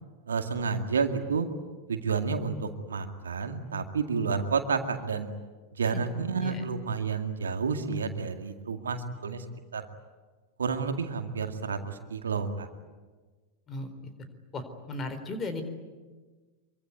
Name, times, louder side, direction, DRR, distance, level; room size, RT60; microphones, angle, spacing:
voice 1, 0.3-1.5 1.9-5.3 5.7-9.4 9.7-9.9 10.6-12.7, right 5 dB, 70° right, 6 dB, 2.2 m, -30 dB
voice 2, 13.7-14.1 14.5-15.6, left 2 dB, 25° left, 9 dB, 4.1 m, -36 dB
25.5 x 24.5 x 9.6 m, 1.4 s
figure-of-eight pair, 90°, 0 cm